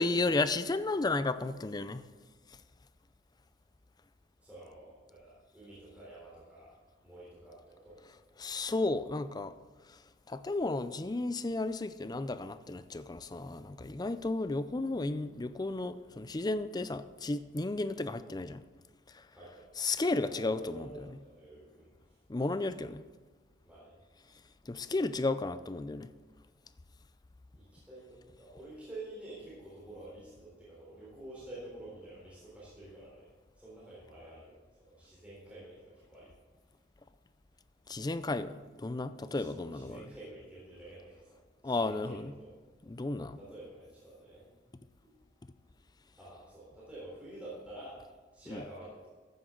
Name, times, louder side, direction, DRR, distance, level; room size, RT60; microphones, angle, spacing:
voice 1, 0.0-2.0 8.4-9.5 10.3-18.6 19.8-21.2 22.3-23.0 24.7-26.1 37.9-40.0 41.6-42.3 42.9-43.4 48.5-48.6, left 2 dB, 25° left, 0.5 m, -33 dB
voice 2, 4.4-6.7 7.0-8.0 19.3-19.7 20.3-21.9 23.6-24.0 27.5-33.3 33.6-36.3 39.2-41.4 41.6-42.5 43.4-44.5 46.2-48.0 48.3-49.1, right 1 dB, 10° right, 3.9 m, -49 dB
14.5 x 9.3 x 3.9 m
head